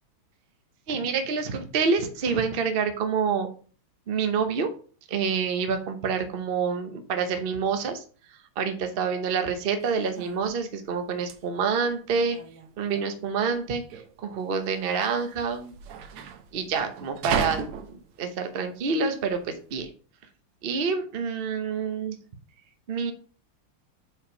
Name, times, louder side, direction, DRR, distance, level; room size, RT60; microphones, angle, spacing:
voice 1, 0.9-3.5 4.1-4.7 5.1-8.0 8.6-12.4 12.8-13.8 14.2-15.7 16.5-19.9 20.6-22.2 22.9-23.1, right 5 dB, 60° right, 7 dB, 0.6 m, -27 dB
sound 1, 9.8-19.9, right 7 dB, 85° right, 1.7 m, -37 dB
5.2 x 4.7 x 5.5 m, 0.41 s
omnidirectional pair, 2.4 m